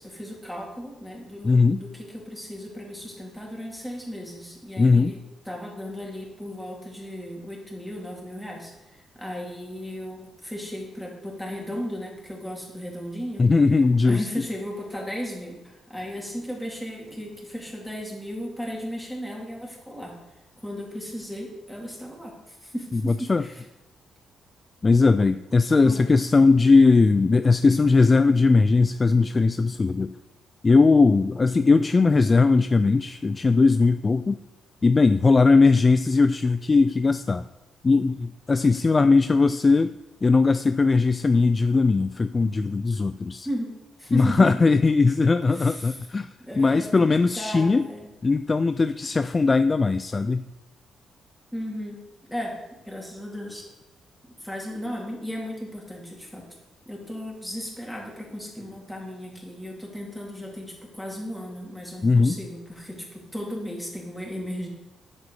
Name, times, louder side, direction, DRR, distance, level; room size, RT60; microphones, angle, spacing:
voice 1, 0.0-5.2 5.4-13.5 14.0-20.2 20.6-23.6 25.7-26.1 43.4-43.7 44.0-44.5 45.5-46.0 46.4-48.0 51.5-52.0 52.3-52.6 52.8-53.6 54.4-56.5 56.9-64.7, equal, ahead, -3 dB, 2.9 m, -35 dB
voice 2, 1.4-1.8 4.8-5.1 13.4-14.2 22.9-23.4 24.8-30.2 30.6-34.4 34.8-37.5 37.8-40.0 40.2-43.5 44.1-46.3 46.5-47.9 48.2-50.4 62.0-62.4, left 4 dB, 25° left, 11 dB, 0.3 m, -19 dB
10.5 x 7.5 x 4.9 m, 1.0 s
cardioid pair, 110°, 0 cm